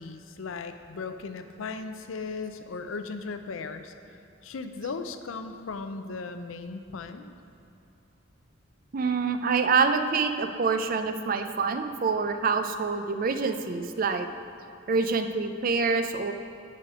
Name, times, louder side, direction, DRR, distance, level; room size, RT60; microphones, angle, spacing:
voice 1, 0.0-3.9 4.4-7.3, left 4 dB, 85° left, 8 dB, 0.5 m, -37 dB
voice 2, 8.9-14.3 14.9-16.3, right 4 dB, 45° right, 8 dB, 0.4 m, -26 dB
9.7 x 5.1 x 4.8 m, 2.8 s
head